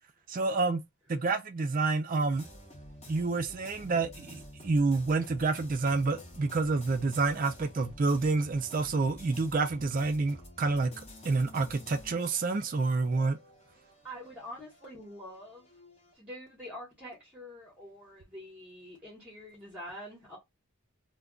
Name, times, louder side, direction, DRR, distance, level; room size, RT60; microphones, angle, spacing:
voice 1, 0.3-0.8 1.1-2.5 3.1-10.9 11.2-13.4, right 3 dB, 40° right, 0.4 m, -28 dB
sound 1, 2.3-16.1, left 1 dB, 30° left, 0.8 m, -50 dB
voice 2, 14.0-15.7 16.2-20.4, equal, 5° right, 0.9 m, -45 dB
2.2 x 2.2 x 3.6 m
head